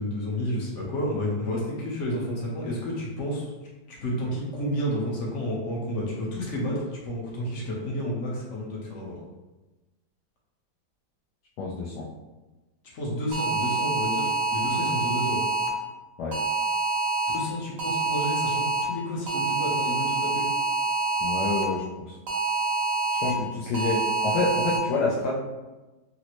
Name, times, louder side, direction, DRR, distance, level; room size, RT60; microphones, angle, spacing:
voice 1, 0.0-3.5 3.9-9.2 12.9-15.4 17.3-20.5 23.3-23.4, equal, 55° left, -3 dB, 0.8 m, -31 dB
voice 2, 11.6-12.1 16.2-16.4 21.2-22.1 23.2-25.4, left 3 dB, 75° left, -5 dB, 1.1 m, -28 dB
sound 1, 13.3-15.7 16.3-17.4 17.8-18.8 19.3-21.6 22.3-23.3 23.7-24.8, right 3 dB, 60° right, 1.0 m, -26 dB
4.0 x 2.1 x 2.9 m, 1.1 s
omnidirectional pair, 1.9 m